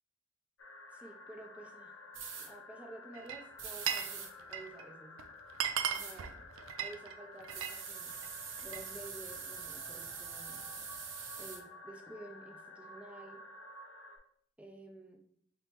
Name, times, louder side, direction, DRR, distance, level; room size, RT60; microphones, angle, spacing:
sound 1, 0.6-14.2, left 2 dB, 80° left, 0.8 m, -52 dB
voice 1, 0.9-2.0 2.3-5.2 5.9-6.5 6.8-8.2 8.6-10.6 11.4-13.4 14.6-15.2, right 2 dB, 5° right, 2 dB, 0.4 m, -51 dB
sound 2, 2.1-2.5 3.6-4.3 5.9-6.2 7.5-11.6, right 6 dB, 65° right, 0.8 m, -44 dB
Glass, 3.1-4.1 4.4-4.8 5.2-5.3 5.5-7.8 8.1-8.9, right 8 dB, 80° right, 0.4 m, -37 dB
5.2 x 3.1 x 2.9 m, 0.65 s
head